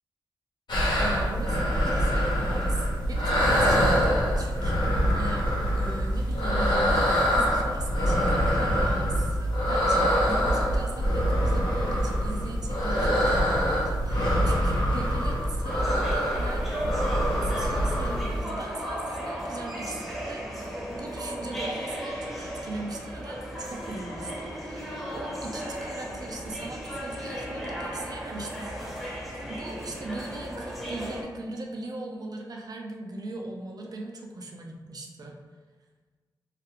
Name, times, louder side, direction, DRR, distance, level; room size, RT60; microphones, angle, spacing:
sound 1, 0.7-18.4, equal, 75° left, 0.8 m, -24 dB
voice 1, 1.0-5.5 5.7-29.1 29.5-35.4, right 2 dB, 55° right, 0 dB, 0.5 m, -39 dB
sound 2, 15.7-31.2, equal, ahead, 0.8 m, -35 dB
2.4 x 2.0 x 3.0 m, 1.4 s
cardioid pair, 50°, 8 cm